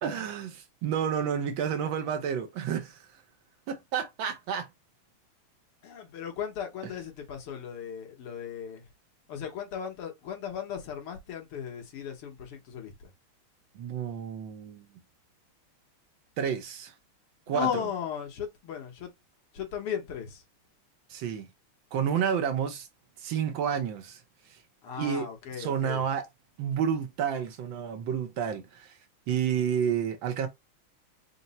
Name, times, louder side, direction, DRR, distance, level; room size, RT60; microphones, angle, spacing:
voice 1, 0.0-3.2 3.7-4.7 6.8-6.9 13.7-14.9 16.4-16.9 17.5-17.7 21.1-21.5 21.9-22.9 23.2-24.2 24.5-24.6 25.0-25.3 25.6-26.3 26.6-29.0 29.3-30.5, right 8 dB, 70° right, 1.4 m, -30 dB
voice 2, 5.8-8.9 9.3-12.9 17.5-19.1 19.5-20.4 24.8-26.0, left 8 dB, 85° left, 2.0 m, -36 dB
4.5 x 2.0 x 4.0 m
omnidirectional pair, 2.4 m